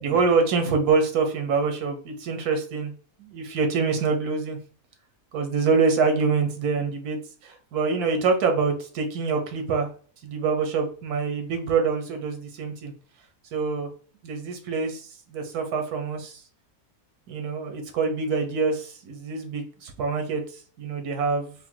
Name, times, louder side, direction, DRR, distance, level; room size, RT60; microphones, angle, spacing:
voice 1, 0.0-2.9 3.2-4.6 5.3-9.9 10.2-12.9 13.5-13.9 14.2-16.4 17.3-21.5, right 4 dB, 90° right, 5 dB, 1.3 m, -25 dB
3.7 x 2.7 x 3.8 m, 0.42 s
omnidirectional pair, 1.6 m